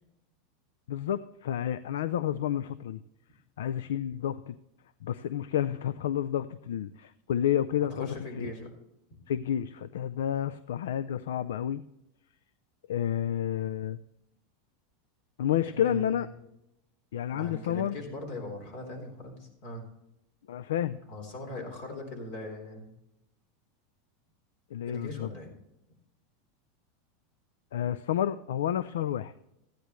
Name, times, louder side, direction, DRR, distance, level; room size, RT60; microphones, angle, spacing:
voice 1, 0.9-3.0 3.6-4.6 5.0-8.1 8.4-8.5 9.3-11.8 12.9-14.0 15.4-16.3 17.1-18.0 20.5-21.0 24.7-25.3 27.7-29.3, left 10 dB, 85° left, 15 dB, 0.3 m, -30 dB
voice 2, 7.9-8.7 15.8-16.3 17.3-19.8 21.1-22.9 24.9-25.5, left 1 dB, 65° left, 2 dB, 3.7 m, -40 dB
14.0 x 10.0 x 3.1 m, 0.85 s
supercardioid pair, 120°, 0 cm